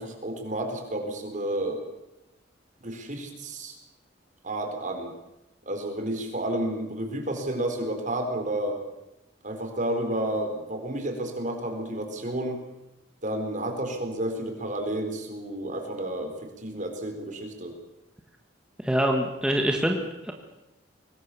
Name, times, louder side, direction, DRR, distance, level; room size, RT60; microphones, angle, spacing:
voice 1, 0.0-1.9 2.8-3.8 4.4-5.1 5.7-8.8 9.4-12.6 13.2-17.7, right 1 dB, 40° right, 4 dB, 4.4 m, -31 dB
voice 2, 18.8-20.3, equal, 5° right, 2 dB, 1.7 m, -25 dB
24.0 x 20.0 x 7.1 m, 0.94 s
head